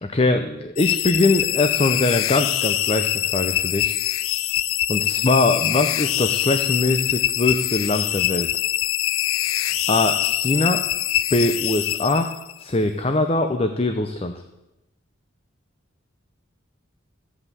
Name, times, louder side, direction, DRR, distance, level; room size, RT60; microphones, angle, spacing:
voice 1, 0.0-4.0 4.9-8.6 9.9-10.8 11.3-12.3 12.6-14.4, left 2 dB, 30° left, 7 dB, 0.7 m, -22 dB
sound 1, 0.8-12.6, left 13 dB, 85° left, 0.4 m, -24 dB
14.5 x 8.3 x 7.2 m, 0.96 s
head